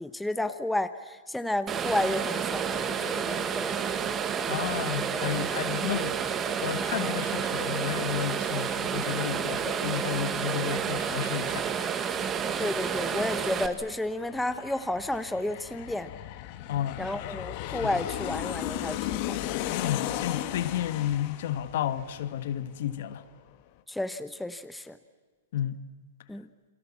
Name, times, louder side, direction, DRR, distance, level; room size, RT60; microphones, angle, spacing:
voice 1, 0.0-3.8 12.6-16.1 17.0-19.5 23.9-25.0 26.3-26.5, left 1 dB, 5° left, 1.0 m, -32 dB
sound 1, 1.7-13.7, right 7 dB, 20° right, 1.5 m, -30 dB
voice 2, 4.5-6.2 6.6-11.7 16.7-17.1 17.7-18.0 19.7-23.2 25.5-25.8, left 11 dB, 60° left, 1.5 m, -32 dB
Aircraft, 11.7-23.0 23.3-23.4, left 13 dB, 45° left, 1.6 m, -36 dB
29.5 x 23.0 x 7.5 m
hypercardioid pair, 140°, 0 cm